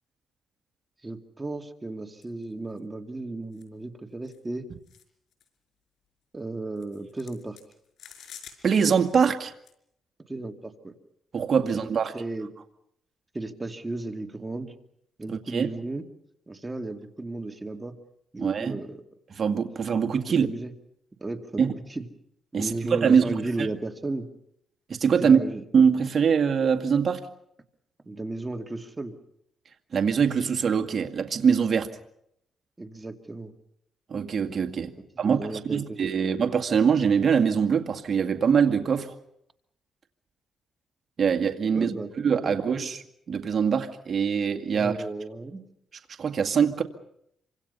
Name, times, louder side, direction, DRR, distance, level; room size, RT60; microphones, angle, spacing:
voice 1, 1.0-4.7 6.3-7.6 10.3-10.9 11.6-11.9 12.1-12.5 13.3-14.7 15.2-16.0 16.5-17.9 18.3-19.0 20.4-20.7 21.2-22.0 22.5-24.3 25.2-25.6 28.1-29.1 32.8-33.5 34.9-36.0 41.7-42.1 42.4-42.6 44.7-45.6, right 2 dB, 20° right, 5 dB, 2.5 m, -34 dB
sound 1, 2.2-2.4 2.8-2.9 3.5-3.6 4.2-4.4 4.9-5.0 5.3-5.5 6.8-9.1 9.4-9.7, left 8 dB, 70° left, 5.5 m, -49 dB
voice 2, 8.6-9.5 11.3-12.1 15.3-15.7 18.4-18.8 19.3-20.5 21.6-21.7 22.5-23.4 24.9-25.4 25.7-27.3 29.9-31.9 34.1-35.4 35.6-39.1 41.2-41.9 42.2-44.9 46.2-46.8, right 6 dB, 50° right, 6 dB, 2.2 m, -23 dB
27.5 x 25.5 x 5.6 m, 0.73 s
cardioid pair, 90°, 0 cm